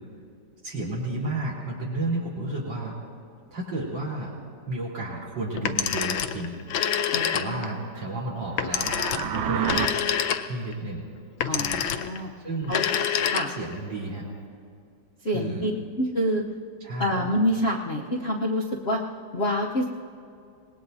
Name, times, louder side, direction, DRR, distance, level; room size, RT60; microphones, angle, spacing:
voice 1, 0.6-2.9 3.5-4.3 4.7-6.6 7.3-9.0 9.3-9.9 10.4-11.0 11.5-11.8 12.4-12.7 13.5-14.2 15.3-15.7 16.8-17.2, right 2 dB, 70° right, -4 dB, 4.7 m, -32 dB
Telephone, 5.6-7.8 8.6-10.7 11.4-12.2 12.6-13.8, left 8 dB, 85° left, 1.5 m, -27 dB
voice 2, 7.1-7.6 11.5-12.3 12.7-12.8 13.3-13.6 15.2-15.7 16.0-16.4 17.0-19.0 19.3-19.9, equal, 50° left, -2 dB, 0.8 m, -27 dB
sound 1, 8.5-9.9, right 9 dB, 85° right, 1.5 m, -29 dB
25.5 x 20.0 x 2.7 m, 2.5 s
omnidirectional pair, 2.2 m